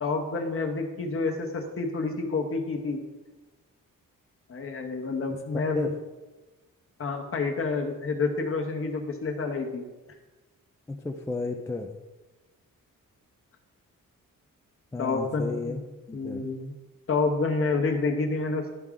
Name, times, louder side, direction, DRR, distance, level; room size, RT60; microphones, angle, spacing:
voice 1, 0.0-3.0 4.5-5.9 7.0-9.8 15.0-15.8 16.1-16.7 17.1-18.7, left 3 dB, 40° left, 3 dB, 1.0 m, -28 dB
voice 2, 10.9-12.0 14.9-15.8 16.1-16.5, left 3 dB, 10° left, 3 dB, 0.3 m, -32 dB
12.0 x 4.7 x 3.7 m, 1.2 s
wide cardioid pair, 175°, 33 cm